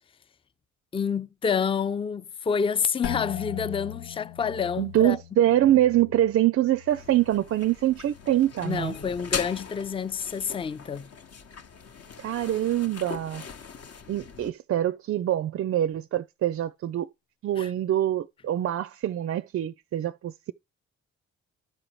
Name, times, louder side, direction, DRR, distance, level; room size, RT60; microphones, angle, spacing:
voice 1, 0.9-5.2 8.6-11.1 17.6-17.7, left 6 dB, 15° left, 0.4 m, -28 dB
sound 1, 3.0-8.7 9.0-9.7 10.2-10.6, left 10 dB, 80° left, 0.6 m, -41 dB
voice 2, 4.8-9.0 12.2-13.5 14.1-17.1 17.4-20.5, right 12 dB, 45° right, 0.4 m, -25 dB
sound 2, 6.9-14.5, left 6 dB, 45° left, 1.0 m, -40 dB
12.5 x 4.9 x 3.1 m
hypercardioid pair, 45°, 33 cm